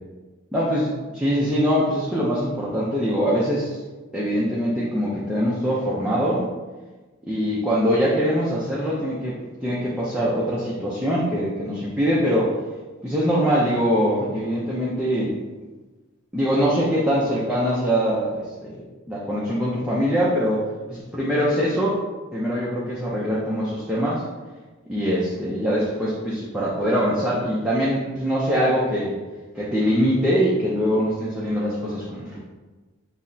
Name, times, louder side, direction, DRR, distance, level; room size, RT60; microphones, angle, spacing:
voice 1, 0.5-0.9 1.1-3.8 4.1-6.5 7.2-12.5 13.0-15.4 16.3-22.0 22.3-24.2 24.9-29.2 29.5-32.4, equal, 5° right, -8 dB, 0.4 m, -23 dB
5.8 x 2.0 x 2.6 m, 1.3 s
head